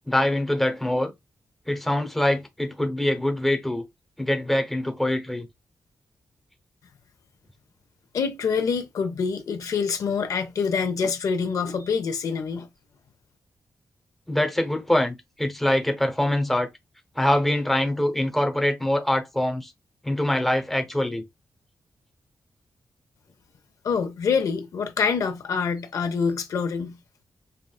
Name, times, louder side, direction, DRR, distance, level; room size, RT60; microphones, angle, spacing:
voice 1, 0.1-1.1 1.7-3.8 4.2-5.5 14.3-16.7 17.1-19.7 20.0-21.2, left 1 dB, 5° left, 0.8 m, -24 dB
voice 2, 8.1-12.7 23.8-27.0, left 5 dB, 80° left, 0.6 m, -26 dB
5.5 x 2.4 x 2.3 m
wide cardioid pair, 125°, 6 cm